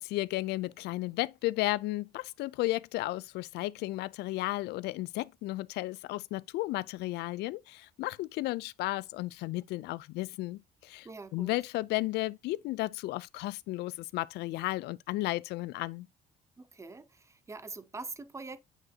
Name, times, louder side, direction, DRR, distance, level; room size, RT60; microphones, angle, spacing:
voice 1, 0.0-11.1 11.3-16.1, left 18 dB, 80° left, 0.4 m, -34 dB
voice 2, 11.0-11.6 16.6-18.6, right 3 dB, 15° right, 0.7 m, -44 dB
8.6 x 5.0 x 2.7 m
cardioid pair, 110°, 17 cm